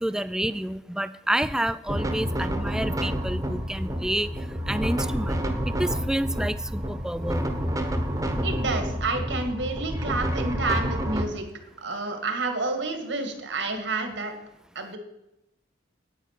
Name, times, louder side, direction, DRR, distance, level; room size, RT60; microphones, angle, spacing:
voice 1, 0.0-4.3 4.7-5.4 5.7-7.4, right 1 dB, 5° right, 14 dB, 0.3 m, -29 dB
sound 1, 1.9-11.2, equal, 20° right, 1.1 m, -29 dB
voice 2, 8.4-11.5 11.8-14.3 14.8-15.0, right 3 dB, 70° right, 5 dB, 2.0 m, -29 dB
9.0 x 9.0 x 6.6 m, 0.89 s
head